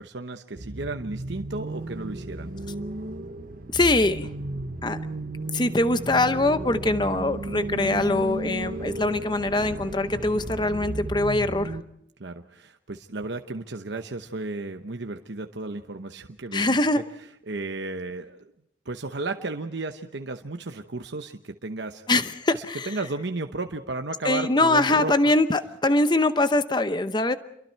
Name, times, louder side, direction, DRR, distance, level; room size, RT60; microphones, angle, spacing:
voice 1, 0.0-2.5 12.2-17.0 17.5-18.5 18.8-22.0 22.5-25.3, right 3 dB, 70° right, 5 dB, 0.9 m, -34 dB
sound 1, 0.6-11.8, right 2 dB, 45° right, 1.0 m, -34 dB
voice 2, 3.7-4.3 4.8-5.0 5.5-11.8 16.5-17.0 22.1-22.9 24.2-27.4, left 2 dB, 25° left, 11 dB, 0.8 m, -23 dB
28.5 x 23.0 x 4.6 m, 0.75 s
head